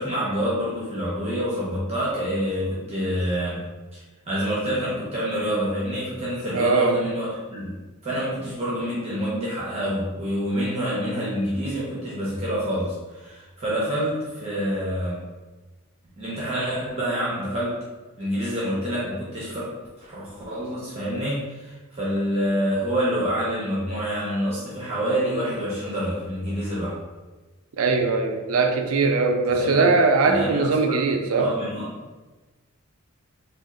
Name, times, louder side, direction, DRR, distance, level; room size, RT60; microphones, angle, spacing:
voice 1, 0.0-3.6 3.9-7.7 8.0-15.2 16.2-17.8 18.2-19.7 20.0-27.0 29.6-29.8 30.2-31.0 31.4-31.9, equal, 30° right, -8 dB, 0.9 m, -27 dB
voice 2, 6.5-7.0 27.8-31.5, right 4 dB, 75° right, 5 dB, 0.5 m, -21 dB
3.5 x 2.4 x 3.7 m, 1.2 s
head